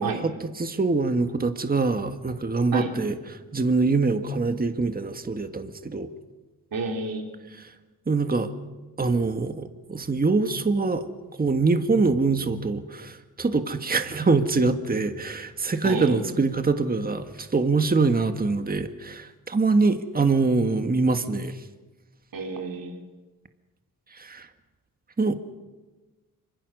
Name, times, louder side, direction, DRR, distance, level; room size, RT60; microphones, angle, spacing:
voice 1, 0.0-3.2 3.5-6.1 7.6-7.7 8.1-8.5 9.0-11.0 11.4-21.6 24.1-24.5 25.2-25.3, right 3 dB, 25° right, 8 dB, 1.6 m, -24 dB
voice 2, 6.7-7.2 15.8-16.2 22.3-23.0, right 4 dB, 65° right, 3 dB, 4.4 m, -30 dB
26.5 x 25.0 x 6.5 m, 1.2 s
cardioid pair, 95°, 37 cm